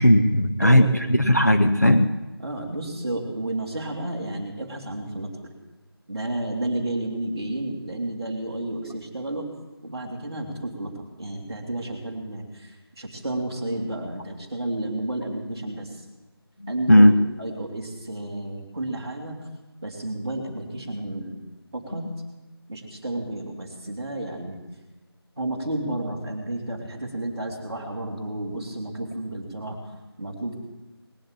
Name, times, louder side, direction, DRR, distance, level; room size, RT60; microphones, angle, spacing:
voice 1, 0.0-2.1 16.6-17.1, left 1 dB, 40° left, 7 dB, 0.6 m, -16 dB
voice 2, 2.4-5.4 6.1-9.5 9.8-15.9 16.7-17.1 17.4-19.4 19.8-21.4 21.7-22.1 22.7-24.6 25.4-29.8 30.2-30.6, right 1 dB, 10° right, -9 dB, 1.7 m, -31 dB
19.5 x 7.7 x 8.7 m, 1.1 s
figure-of-eight pair, 180°, 13 cm